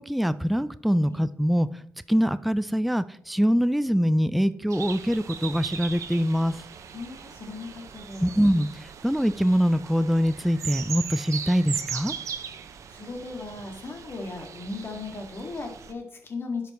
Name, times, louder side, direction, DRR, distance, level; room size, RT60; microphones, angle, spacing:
voice 1, 0.0-1.7 2.1-6.6 8.2-12.1, equal, ahead, 14 dB, 0.4 m, -24 dB
sound 1, 4.7-15.9, right 7 dB, 70° right, 0.7 m, -38 dB
voice 2, 6.9-8.3 12.9-16.7, left 3 dB, 45° left, 2 dB, 2.0 m, -37 dB
11.5 x 5.1 x 3.1 m, 0.67 s
cardioid pair, 60°, 5 cm